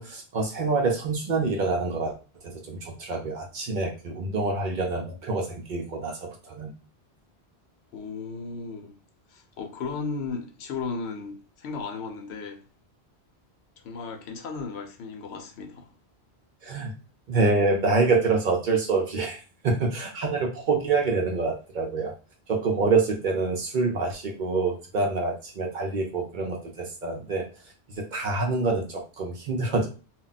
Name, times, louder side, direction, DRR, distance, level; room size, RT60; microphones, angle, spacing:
voice 1, 0.0-2.1 2.4-6.7 16.6-16.9 17.3-22.1 22.5-27.4 28.0-29.9, right 3 dB, 55° right, 0.6 m, -26 dB
voice 2, 7.9-8.9 9.3-12.6 13.8-15.9, left 4 dB, 80° left, 0.9 m, -35 dB
2.3 x 2.1 x 3.9 m
omnidirectional pair, 1.1 m